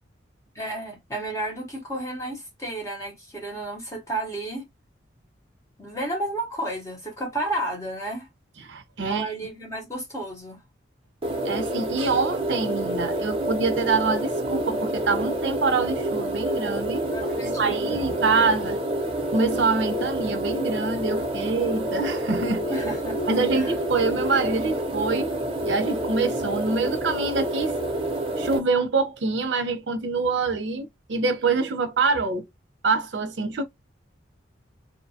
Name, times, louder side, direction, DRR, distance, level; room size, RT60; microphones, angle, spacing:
voice 1, 0.5-4.7 5.8-8.3 9.1-10.6 17.1-18.0 22.7-23.7, right 1 dB, 15° left, 0.9 m, -32 dB
voice 2, 8.6-9.3 11.4-17.1 17.6-18.8 19.3-22.6 23.3-25.3 25.6-27.7 28.4-32.5 32.8-33.6, right 4 dB, 65° right, 0.6 m, -25 dB
sound 1, 11.2-28.6, right 1 dB, 30° right, 0.6 m, -28 dB
2.6 x 2.2 x 2.7 m
head